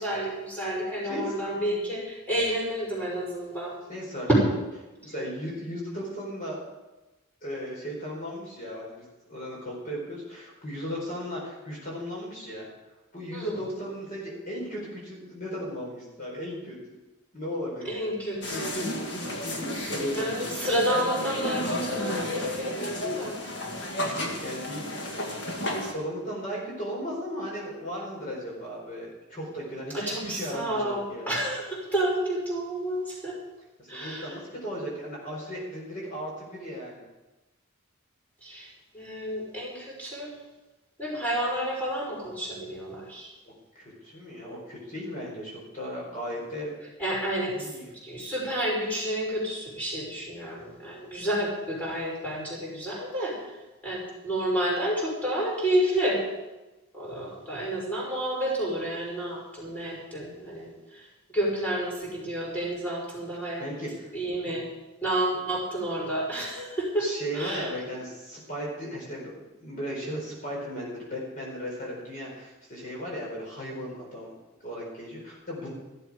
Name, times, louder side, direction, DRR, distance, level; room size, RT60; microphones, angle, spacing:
voice 1, 0.0-3.7 4.3-4.4 13.3-13.6 17.8-18.9 20.2-23.4 29.9-33.4 33.9-34.3 38.4-38.7 38.9-40.3 41.0-43.3 47.0-47.7 48.0-53.3 53.8-56.2 56.9-61.0 61.3-63.6 64.1-64.7 65.0-67.1 67.3-67.7, right 1 dB, 5° left, -6 dB, 5.3 m, -30 dB
voice 2, 1.1-1.8 3.9-4.3 4.9-6.6 7.4-12.7 13.1-16.7 17.3-18.1 19.4-20.2 24.0-24.9 25.4-31.4 33.8-37.1 43.7-46.8 47.5-47.8 63.6-64.1 67.0-69.3 69.6-74.3 74.6-75.7, equal, 40° left, -3 dB, 4.3 m, -36 dB
sound 1, 18.4-25.9, left 1 dB, 55° left, 1.8 m, -32 dB
15.0 x 12.5 x 4.9 m, 1.1 s
head